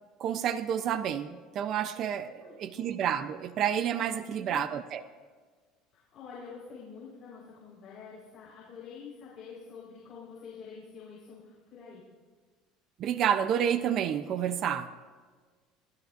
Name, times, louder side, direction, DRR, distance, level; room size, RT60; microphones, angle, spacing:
voice 1, 0.2-5.0 13.0-14.9, right 9 dB, 40° right, 12 dB, 0.6 m, -29 dB
voice 2, 2.4-2.9 4.3-4.6 5.9-12.0, left 6 dB, 35° left, -7 dB, 4.3 m, -47 dB
26.5 x 16.5 x 2.5 m, 1.5 s
cardioid pair, 160°, 0 cm